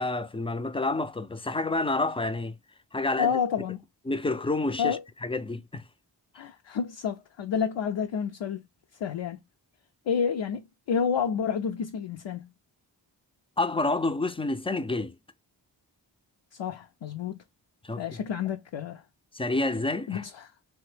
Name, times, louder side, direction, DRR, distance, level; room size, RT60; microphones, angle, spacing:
voice 1, 0.0-2.6 2.9-3.4 4.1-5.9 13.6-15.1 17.8-18.0 19.3-20.3, left 2 dB, 15° left, 0.3 m, -29 dB
voice 2, 3.2-3.8 4.8-5.0 6.3-8.7 9.0-9.4 10.1-12.5 16.6-17.4 18.0-19.0 20.1-20.5, left 7 dB, 75° left, 0.5 m, -29 dB
3.2 x 2.1 x 3.2 m
cardioid pair, 45°, 45 cm